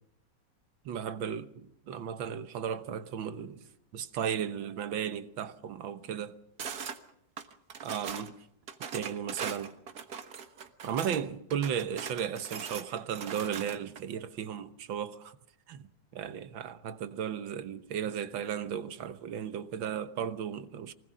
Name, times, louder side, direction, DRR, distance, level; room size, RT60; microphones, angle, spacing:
voice 1, 0.9-6.4 7.8-8.3 8.9-9.8 10.8-15.4 15.7-20.9, right 8 dB, 90° right, 1.9 m, -35 dB
sound 1, 6.6-7.0 7.4-8.3 8.7-11.2 11.5-14.0, right 6 dB, 55° right, 1.9 m, -40 dB
24.5 x 19.5 x 6.3 m
omnidirectional pair, 2.1 m